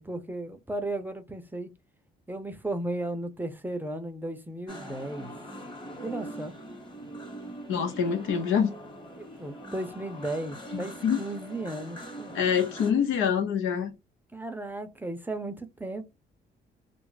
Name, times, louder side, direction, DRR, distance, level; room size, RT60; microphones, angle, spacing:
voice 1, 0.0-1.7 2.3-5.3 6.0-6.5 9.2-12.3 14.3-16.0, right 1 dB, 10° right, 0.6 m, -35 dB
sound 1, 4.7-12.9, right 1 dB, 25° left, 1.1 m, -42 dB
voice 2, 7.7-8.7 10.7-11.2 12.3-13.9, left 7 dB, 85° left, 0.8 m, -26 dB
2.4 x 2.0 x 3.9 m
cardioid pair, 90°, 20 cm